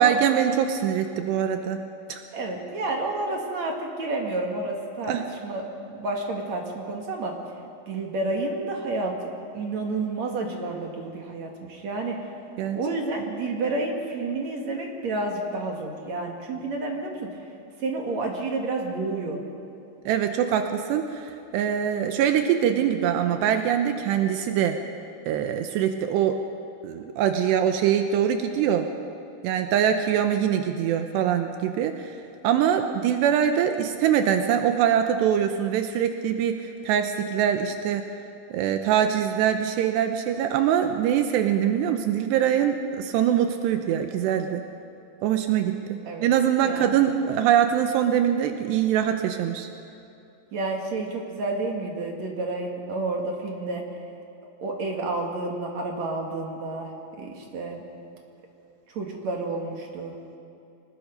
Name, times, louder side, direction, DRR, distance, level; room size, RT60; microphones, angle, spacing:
voice 1, 0.0-1.8 2.1-2.2 5.1-5.2 12.6-12.8 20.1-24.8 25.3-26.4 26.8-28.9 29.4-32.2 32.4-38.0 38.5-44.6 45.2-49.7, right 9 dB, 80° right, 6 dB, 2.9 m, -23 dB
voice 2, 2.3-5.1 5.4-5.6 5.9-7.3 7.9-9.2 9.5-12.2 12.7-17.2 17.8-19.4 46.0-46.3 46.6-47.0 50.5-53.8 54.6-56.9 57.2-57.9 58.9-60.1, right 2 dB, 50° right, 1 dB, 2.6 m, -30 dB
25.5 x 20.0 x 5.3 m, 2.7 s
omnidirectional pair, 5.0 m